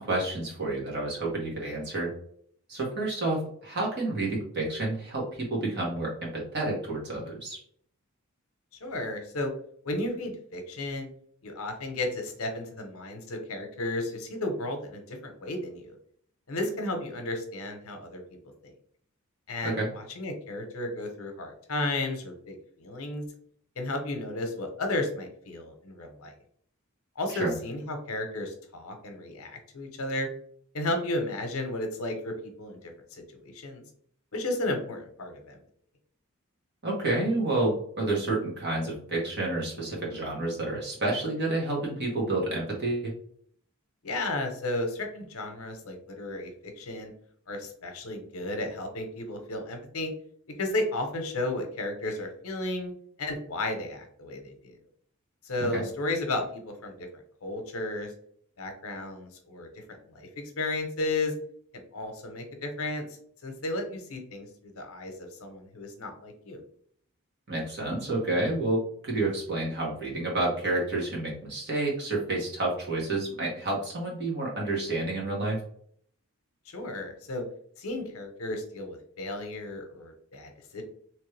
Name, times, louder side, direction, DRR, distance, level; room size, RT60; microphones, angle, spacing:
voice 1, 0.0-2.1 2.7-7.6 19.6-19.9 27.3-27.5 36.8-43.1 55.7-55.8 67.5-75.6, right 2 dB, 50° right, -3 dB, 1.5 m, -29 dB
voice 2, 8.8-9.5 9.8-11.1 11.4-15.9 16.5-18.2 19.5-23.3 23.8-26.3 27.2-30.3 30.7-33.8 34.3-35.6 44.0-46.5 46.8-47.1 47.5-50.1 50.6-52.9 53.2-54.8 55.4-57.1 57.4-58.1 58.6-61.3 61.9-63.0 63.4-66.6 76.7-77.4 77.8-80.8, left 2 dB, 70° left, 5 dB, 0.9 m, -33 dB
3.3 x 3.2 x 3.2 m, 0.62 s
head